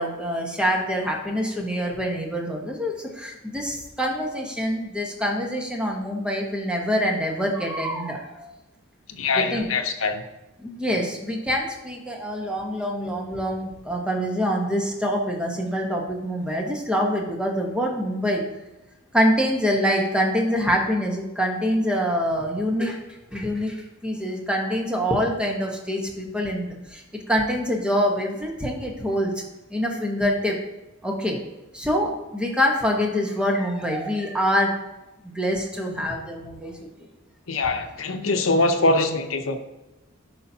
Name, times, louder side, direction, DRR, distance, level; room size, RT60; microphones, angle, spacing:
voice 1, 0.0-8.5 9.3-9.7 10.6-18.4 19.1-23.0 23.3-29.3 29.7-30.6 31.0-31.4 31.7-34.7 35.2-36.7, equal, 5° right, 0 dB, 1.1 m, -25 dB
voice 2, 9.1-10.2 37.5-39.6, left 2 dB, 70° left, 5 dB, 0.8 m, -23 dB
11.0 x 5.8 x 2.8 m, 1.0 s
head